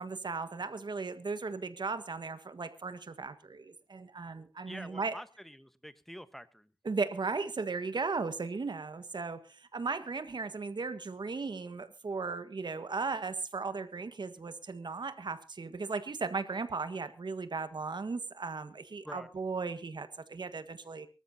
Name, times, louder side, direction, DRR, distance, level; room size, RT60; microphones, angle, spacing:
voice 1, 0.0-5.1 6.8-21.1, right 4 dB, 75° right, 11 dB, 1.5 m, -36 dB
voice 2, 4.7-6.7 19.0-19.3, equal, 5° left, 13 dB, 1.2 m, -47 dB
24.5 x 13.5 x 2.8 m, 0.31 s
wide cardioid pair, 80°, 8 cm